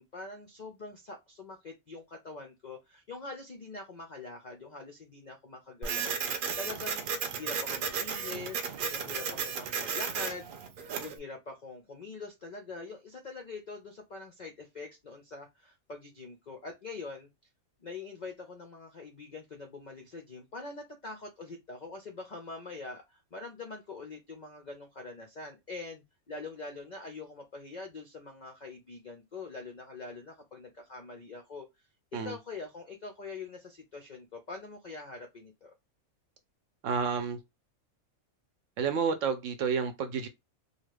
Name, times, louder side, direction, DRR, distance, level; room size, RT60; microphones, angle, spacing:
voice 1, 0.0-7.0 7.4-10.5 11.0-17.3 17.8-31.7 32.1-35.7, left 3 dB, 60° left, 0.4 m, -44 dB
Printer, 5.8-11.2, right 6 dB, 90° right, 0.4 m, -34 dB
voice 2, 36.8-37.4 38.8-40.3, right 6 dB, 65° right, 0.9 m, -30 dB
2.7 x 2.4 x 3.1 m
omnidirectional pair, 1.5 m